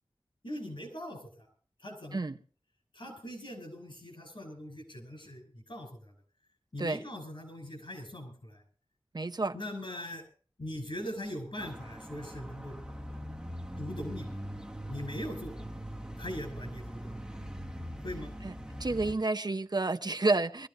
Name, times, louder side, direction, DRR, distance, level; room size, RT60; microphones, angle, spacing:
voice 1, 0.4-1.5 1.8-2.2 2.9-6.1 6.7-8.6 9.5-10.2 10.6-12.8 13.8-14.4 14.9-15.5 16.2-17.1 18.0-18.3, left 1 dB, 65° left, 5.9 m, -41 dB
voice 2, 9.1-9.5 18.4-18.5 18.8-20.7, right 3 dB, 50° right, 0.7 m, -29 dB
sound 1, 11.6-19.1, equal, 10° right, 1.0 m, -41 dB
23.0 x 13.5 x 2.8 m
wide cardioid pair, 60°, 9 cm